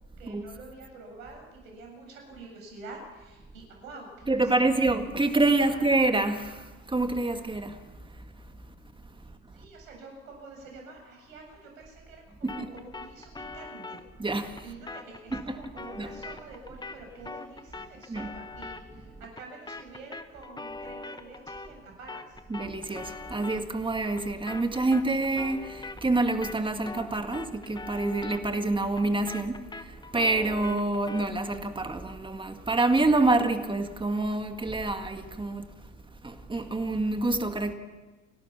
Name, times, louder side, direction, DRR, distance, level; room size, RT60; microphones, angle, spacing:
voice 1, 0.2-5.3 5.6-5.8 9.5-12.2 12.5-14.0 14.6-22.4, right 3 dB, 80° right, 7.7 m, -47 dB
voice 2, 4.3-7.9 9.3-9.4 12.4-12.7 14.2-14.6 15.3-15.4 16.0-16.1 18.1-18.3 22.5-35.7 36.2-37.7, right 2 dB, 10° right, 2.0 m, -27 dB
sound 1, 12.5-21.8 22.1-31.4, left 3 dB, 10° left, 1.1 m, -43 dB
30.0 x 12.0 x 7.2 m
hypercardioid pair, 85°, 40 cm